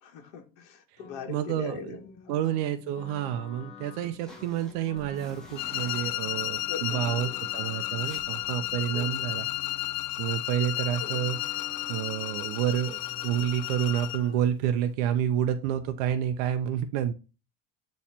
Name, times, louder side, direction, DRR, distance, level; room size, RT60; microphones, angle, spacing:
voice 1, 0.0-2.4 6.7-7.4 8.9-9.3 10.4-10.5 11.0-11.2, left 6 dB, 65° left, 1.8 m, -41 dB
sound 1, 1.0-14.5, left 6 dB, 25° left, 1.0 m, -48 dB
voice 2, 1.3-2.0 2.3-9.5 10.2-11.4 11.9-17.1, right 10 dB, 65° right, 0.6 m, -29 dB
sound 2, 4.0-6.8 7.3-7.4 7.7-7.8 8.0-9.5, equal, 5° left, 1.3 m, -51 dB
sound 3, 5.5-14.3, left 16 dB, 50° left, 0.4 m, -33 dB
8.5 x 3.2 x 4.3 m
cardioid pair, 175°, 21 cm